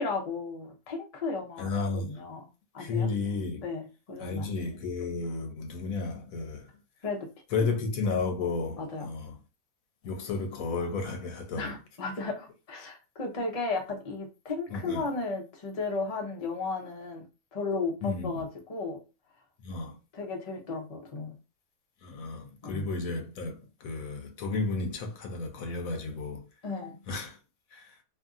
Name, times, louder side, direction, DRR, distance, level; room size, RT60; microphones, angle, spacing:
voice 1, 0.0-2.4 2.7-3.1 3.6-4.5 7.0-7.3 8.8-9.0 11.6-17.2 17.5-19.0 20.1-21.3 22.6-22.9 26.6-27.0, left 3 dB, 40° left, 0.5 m, -34 dB
voice 2, 1.6-2.2 2.8-3.6 4.2-6.7 7.5-9.4 10.0-11.7 14.7-15.0 18.0-18.4 19.6-20.0 22.0-26.5 27.1-27.4 27.7-28.0, left 4 dB, 70° left, 1.1 m, -33 dB
2.7 x 2.6 x 2.4 m
omnidirectional pair, 1.6 m